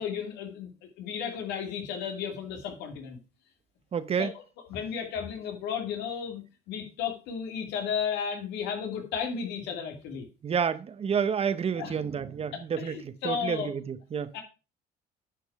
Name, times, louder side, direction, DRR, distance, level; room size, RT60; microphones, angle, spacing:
voice 1, 0.0-3.2 4.2-4.3 4.7-6.4 6.7-10.2 11.7-11.9 12.5-13.7 14.3-14.4, left 7 dB, 90° left, 2.5 m, -34 dB
voice 2, 3.9-4.3 10.4-14.3, right 7 dB, 35° right, 0.8 m, -29 dB
10.0 x 5.4 x 4.6 m
cardioid pair, 110°, 17 cm